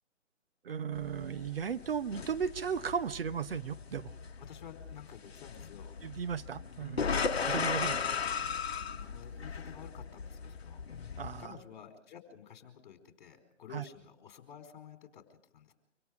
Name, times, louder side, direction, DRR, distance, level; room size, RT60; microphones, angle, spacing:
voice 1, 0.6-4.1 6.0-7.1 7.5-8.0 11.2-11.5 13.7-13.8, right 7 dB, 50° right, 11 dB, 1.0 m, -35 dB
sound 1, 1.0-11.5, left 6 dB, 55° left, 1.4 m, -37 dB
voice 2, 4.4-5.9 7.0-7.6 7.8-8.1 8.7-10.8 11.4-15.7, left 8 dB, 40° left, 6 dB, 4.4 m, -52 dB
26.0 x 26.0 x 5.1 m, 0.67 s
figure-of-eight pair, 135°, 37 cm